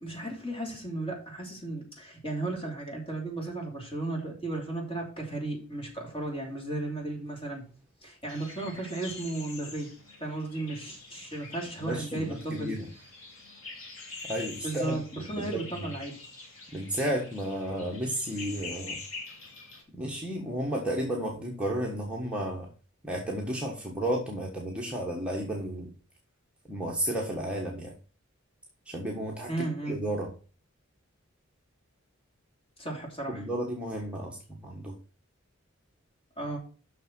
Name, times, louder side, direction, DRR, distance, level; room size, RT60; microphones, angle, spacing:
voice 1, 0.0-7.6 8.0-9.9 10.2-12.8 14.6-16.2 29.5-30.0 32.8-33.4 36.4-36.6, right 2 dB, 25° left, 0 dB, 3.0 m, -35 dB
sound 1, 8.3-19.8, left 3 dB, 90° left, 3.8 m, -45 dB
voice 2, 11.8-12.9 14.3-15.0 15.4-15.9 16.7-19.0 19.9-22.7 23.0-25.9 26.7-27.9 28.9-29.5 29.9-30.3 33.3-34.9, right 1 dB, 5° right, -2 dB, 1.4 m, -32 dB
6.8 x 6.2 x 6.0 m, 0.38 s
head